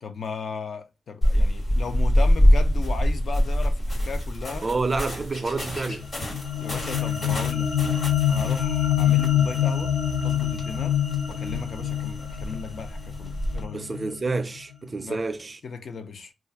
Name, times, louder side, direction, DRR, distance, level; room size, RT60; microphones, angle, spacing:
voice 1, 0.0-4.7 6.6-7.7 8.3-9.9 10.2-11.0 11.3-13.8 15.0-15.2 15.6-16.3, left 5 dB, 60° left, 0.5 m, -36 dB
sound 1, 1.2-13.6, equal, 45° left, 1.3 m, -26 dB
voice 2, 4.6-6.1 13.7-15.6, right 3 dB, 30° right, 0.4 m, -28 dB
sound 2, 5.9-14.3, left 10 dB, 80° left, 0.8 m, -26 dB
2.4 x 2.4 x 3.9 m
wide cardioid pair, 140°, 0 cm